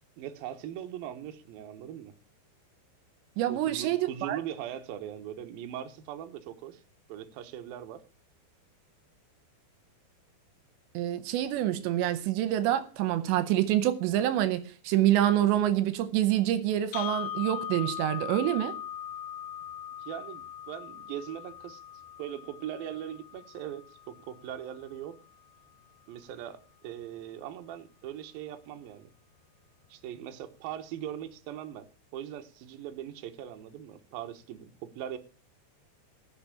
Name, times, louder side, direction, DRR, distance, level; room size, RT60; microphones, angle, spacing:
voice 1, 0.2-2.1 3.5-6.8 7.1-8.0 20.0-21.8 22.2-25.2 26.1-29.1 29.9-35.2, right 10 dB, 65° right, 2.6 m, -40 dB
voice 2, 3.4-4.4 10.9-18.8, right 12 dB, 85° right, 3.1 m, -26 dB
sound 1, 16.9-25.0, left 10 dB, 85° left, 1.9 m, -40 dB
15.5 x 6.2 x 8.3 m
omnidirectional pair, 5.1 m